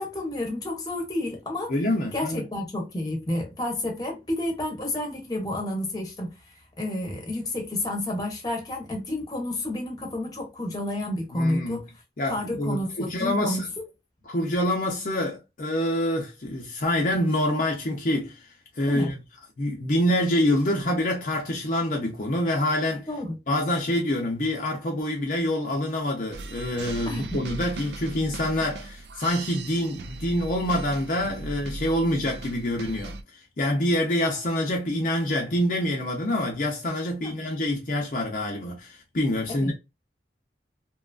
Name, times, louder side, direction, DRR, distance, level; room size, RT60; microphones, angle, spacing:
voice 1, 0.0-1.7 2.1-6.3 6.8-11.8 12.3-13.6 18.9-19.1 23.1-23.4 27.1-27.4 37.2-37.5 39.5-39.7, left 1 dB, 20° left, 0.9 m, -30 dB
voice 2, 1.7-2.4 11.3-11.8 12.2-13.7 14.3-18.5 18.8-19.2 19.6-23.1 23.5-39.7, left 1 dB, 50° left, 0.6 m, -26 dB
sound 1, 26.3-33.2, right 3 dB, 65° right, 0.4 m, -38 dB
2.9 x 2.3 x 2.3 m
head